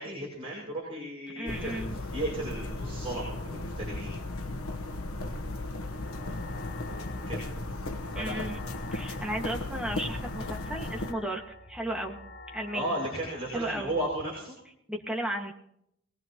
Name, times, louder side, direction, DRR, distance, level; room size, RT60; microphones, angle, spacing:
voice 1, 0.0-4.1 6.9-7.4 7.7-7.8 8.1-8.4 12.7-14.5, right 1 dB, 30° right, -5 dB, 6.4 m, -35 dB
voice 2, 1.4-1.9 8.2-8.6 8.9-11.4 11.7-12.2 12.5-13.0 13.5-13.9 14.9-15.5, right 1 dB, 5° right, 0 dB, 1.9 m, -34 dB
sound 1, 1.5-11.1, left 2 dB, 90° left, 1.2 m, -36 dB
sound 2, 5.9-14.1, left 2 dB, 70° left, 3.4 m, -48 dB
22.0 x 19.5 x 3.1 m, 0.75 s
head